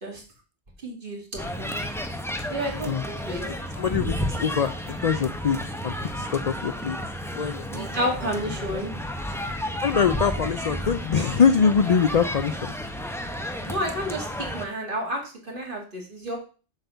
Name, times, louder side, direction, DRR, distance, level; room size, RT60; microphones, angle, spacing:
voice 1, 0.8-1.7 2.5-3.0 3.3-3.4 7.7-9.0 13.7-16.4, equal, 50° right, -1 dB, 2.9 m, -30 dB
sound 1, 1.4-14.6, equal, 5° left, 0.7 m, -32 dB
voice 2, 3.4-7.0 7.3-7.6 9.8-12.7, left 6 dB, 50° left, 10 dB, 0.5 m, -24 dB
7.8 x 4.3 x 6.8 m, 0.36 s
omnidirectional pair, 1.2 m